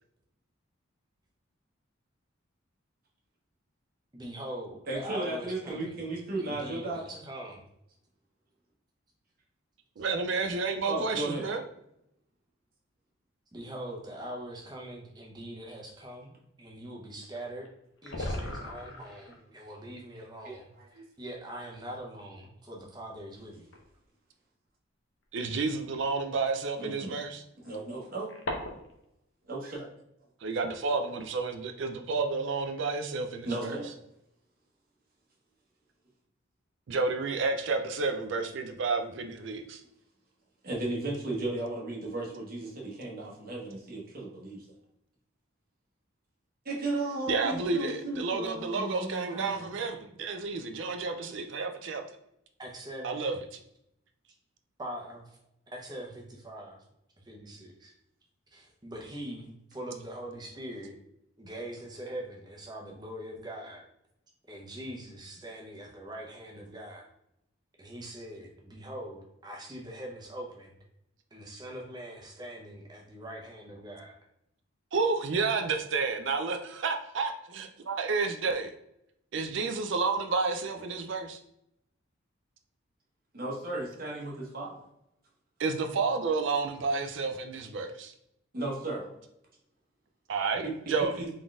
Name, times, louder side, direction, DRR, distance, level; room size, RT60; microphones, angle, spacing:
voice 1, 4.1-5.9 6.4-7.6 10.0-10.1 13.5-16.3 16.6-17.7 18.0-23.7 49.3-49.7 52.6-53.3 54.8-55.4 55.7-56.8 57.2-57.9 58.5-61.0 61.4-63.8 64.5-67.0 67.8-70.7 71.3-74.1, right 1 dB, 20° right, -1 dB, 0.8 m, -42 dB
voice 2, 4.9-7.0 10.8-11.5 20.4-21.0 26.8-27.2 27.7-28.3 29.4-29.9 33.4-33.9 40.6-44.7 46.6-49.7 83.3-84.8 88.5-89.1 90.6-91.3, right 2 dB, 45° right, -2 dB, 1.0 m, -35 dB
voice 3, 10.0-11.6 25.3-27.4 30.4-33.8 36.9-39.8 47.3-52.0 53.0-53.3 74.9-78.7 79.3-81.4 85.6-88.1 90.3-91.2, right 4 dB, 65° right, 5 dB, 0.4 m, -30 dB
sound 1, 14.7-14.8 17.3-17.4 17.6-17.7 18.0-19.3 20.7-20.8 21.7-21.8 23.7-24.0 25.2-25.3 27.4-29.0, left 1 dB, 65° left, 0.7 m, -37 dB
3.8 x 3.7 x 2.4 m, 0.79 s
head